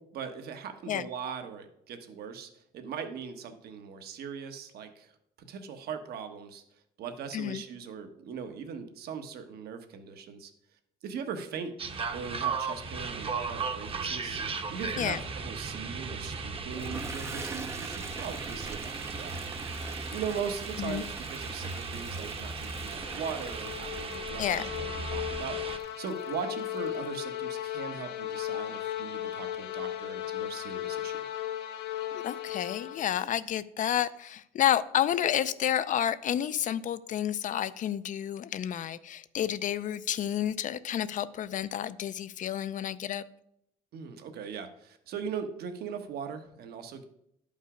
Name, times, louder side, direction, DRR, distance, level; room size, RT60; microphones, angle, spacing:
voice 1, 0.0-5.1 5.4-6.6 7.0-10.5 11.0-11.7 12.1-19.4 19.9-31.2 43.9-47.0, right 6 dB, 70° right, 7 dB, 1.3 m, -40 dB
sound 1, 11.8-25.8, right 4 dB, 35° right, 0.9 m, -36 dB
Toilet flush, 16.6-27.1, right 3 dB, 15° right, 0.5 m, -45 dB
sound 2, 22.7-33.3, left 12 dB, 75° left, 1.0 m, -36 dB
voice 2, 24.4-24.7 32.1-43.2, left 10 dB, 50° left, 15 dB, 0.5 m, -30 dB
11.0 x 5.5 x 5.0 m, 0.76 s
cardioid pair, 110°, 17 cm